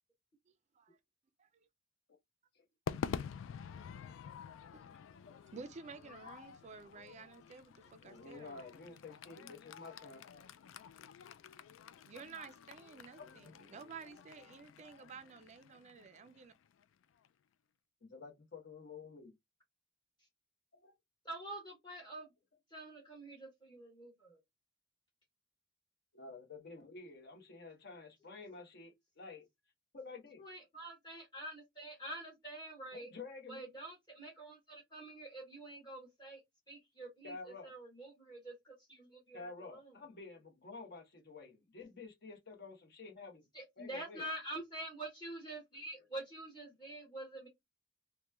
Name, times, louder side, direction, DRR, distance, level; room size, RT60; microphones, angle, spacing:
Crowd / Fireworks, 2.9-17.3, left 7 dB, 80° left, 0.3 m, -48 dB
voice 1, 5.5-8.7 12.1-16.5, right 5 dB, 35° right, 0.4 m, -52 dB
voice 2, 8.0-10.4 13.2-13.6 18.0-19.3 20.8-20.9 26.1-29.4 29.9-30.4 32.9-33.7 37.2-37.7 39.3-43.5 43.8-44.2, left 4 dB, 55° left, 1.0 m, -50 dB
voice 3, 21.2-22.3 22.7-24.4 30.4-33.1 33.5-36.4 36.7-39.9 43.5-47.5, right 1 dB, 25° left, 1.1 m, -47 dB
3.0 x 2.1 x 3.4 m
head